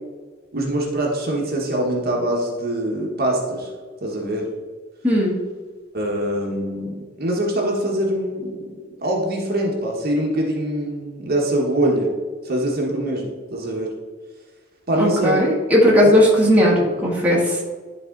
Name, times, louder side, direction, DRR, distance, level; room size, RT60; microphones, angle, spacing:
voice 1, 0.5-3.7 4.0-4.5 5.9-12.1 12.4-13.9 14.9-15.4, right 1 dB, 50° right, -1 dB, 1.4 m, -23 dB
voice 2, 5.0-5.4 14.9-17.6, equal, 10° right, -4 dB, 1.6 m, -16 dB
11.0 x 4.1 x 3.9 m, 1.5 s
head